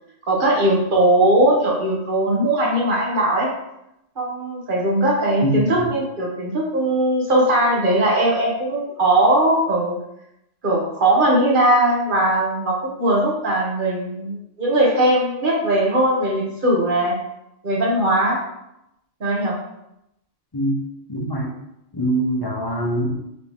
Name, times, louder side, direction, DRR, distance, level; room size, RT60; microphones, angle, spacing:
voice 1, 0.3-3.5 4.2-9.9 10.6-17.2 17.6-18.4 19.2-19.6, right 1 dB, 45° right, -3 dB, 1.1 m, -19 dB
voice 2, 5.4-5.9 20.5-20.8 21.1-21.5 21.9-23.1, right 1 dB, 35° left, -3 dB, 0.4 m, -23 dB
4.3 x 2.9 x 3.4 m, 0.84 s
omnidirectional pair, 1.3 m